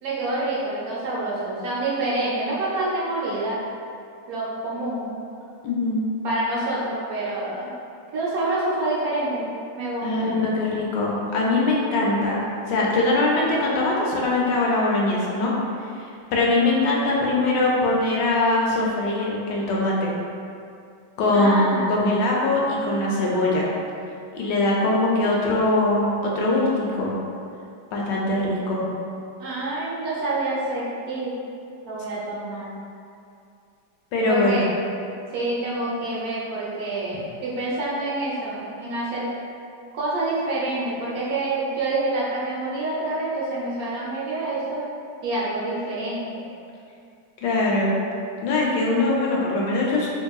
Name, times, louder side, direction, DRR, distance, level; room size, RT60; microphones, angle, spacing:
voice 1, 0.0-3.6 4.3-5.2 6.2-7.7 8.1-9.5 9.7-10.3 21.3-21.9 29.4-31.3 31.8-32.7 34.3-34.7 35.3-39.3 39.9-44.8 45.2-46.4, right 2 dB, 70° right, -7 dB, 1.0 m, -27 dB
voice 2, 5.6-6.0 10.0-15.5 16.3-20.1 21.2-23.7 24.3-27.1 27.9-28.9 34.1-34.6 47.4-47.9 48.4-50.1, left 2 dB, 85° left, -3 dB, 1.2 m, -22 dB
3.7 x 2.9 x 2.3 m, 2.5 s
omnidirectional pair, 1.9 m